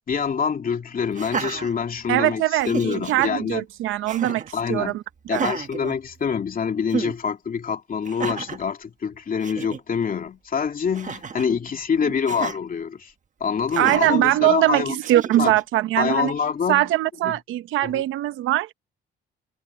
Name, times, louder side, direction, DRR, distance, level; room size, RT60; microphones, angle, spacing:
voice 1, 0.1-3.6 4.5-5.0 5.3-13.1 13.4-14.9 15.4-15.5 16.0-16.9 17.3-17.4 17.8-18.0, left 6 dB, 45° left, 2.7 m, -26 dB
Laughter, 1.1-2.2 2.6-3.3 4.1-4.5 5.3-6.5 6.9-7.2 8.0-8.6 9.1-9.2 9.4-9.8 10.9-11.5 12.3-12.6 13.7-14.2 15.0-15.6, right 6 dB, 40° right, 1.3 m, -31 dB
voice 2, 2.1-4.4 4.7-5.4 13.8-16.3 16.7-18.7, right 14 dB, 90° right, 1.0 m, -22 dB
cardioid pair, 90°, 20 cm